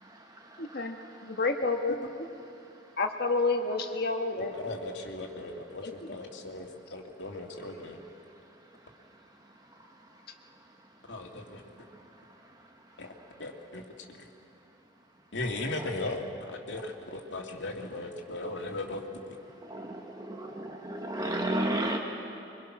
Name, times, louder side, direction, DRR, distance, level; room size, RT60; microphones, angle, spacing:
voice 1, 0.6-1.0 1.2-2.1 3.0-4.5 5.8-6.1, left 3 dB, 55° left, 4 dB, 1.4 m, -29 dB
voice 2, 4.4-8.0 11.1-11.6 13.0-13.1 13.4-13.8 15.3-19.0, left 2 dB, 75° left, 1 dB, 2.2 m, -37 dB
voice 3, 19.7-22.0, right 1 dB, 20° right, 2 dB, 1.2 m, -32 dB
25.0 x 23.5 x 6.1 m, 2.8 s
head